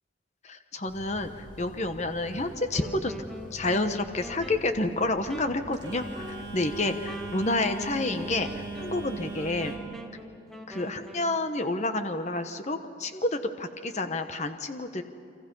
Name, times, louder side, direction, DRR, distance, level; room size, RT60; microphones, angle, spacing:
voice 1, 0.4-3.2 3.5-8.5 8.8-9.7 10.7-15.0, left 2 dB, 35° left, 7 dB, 1.1 m, -29 dB
Telephone, 0.9-9.8, right 2 dB, 25° right, 5.7 m, -41 dB
Wind instrument woodwind instrument, 2.6-11.3, equal, ahead, 1.5 m, -45 dB
29.0 x 25.0 x 5.5 m, 2.6 s
head